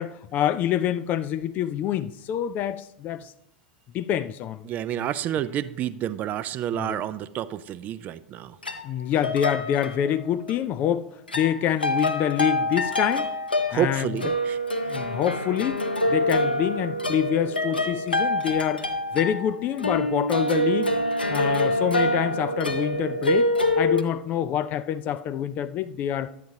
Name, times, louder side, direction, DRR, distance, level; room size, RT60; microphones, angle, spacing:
voice 1, 0.0-3.3 3.9-4.6 6.7-7.0 8.8-13.3 13.7-14.1 14.9-15.8 16.1-18.9 19.1-20.9 21.3-23.5 23.8-26.3, left 10 dB, 35° left, 0.4 m, -26 dB
voice 2, 4.6-8.6 13.7-14.6, right 11 dB, 35° right, 0.4 m, -29 dB
sound 1, 8.6-10.5 11.3-24.0, left 1 dB, 80° left, 0.7 m, -26 dB
11.5 x 8.9 x 2.8 m
figure-of-eight pair, 85°, 5 cm